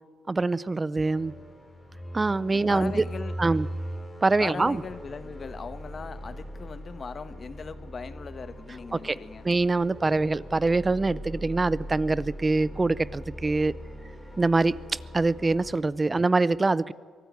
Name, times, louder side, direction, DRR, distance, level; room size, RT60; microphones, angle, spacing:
voice 1, 0.3-1.3 2.1-3.0 3.4-3.7 4.2-4.8 9.0-9.2 9.4-13.7 14.4-14.8 15.1-16.9, right 3 dB, 25° right, 19 dB, 0.5 m, -24 dB
sound 1, 1.0-15.7, equal, 20° left, 4.6 m, -40 dB
voice 2, 2.5-3.4 4.4-9.5 13.8-13.9, left 5 dB, 40° left, 12 dB, 1.2 m, -39 dB
23.0 x 13.5 x 9.5 m, 2.1 s
cardioid pair, 90°, 0 cm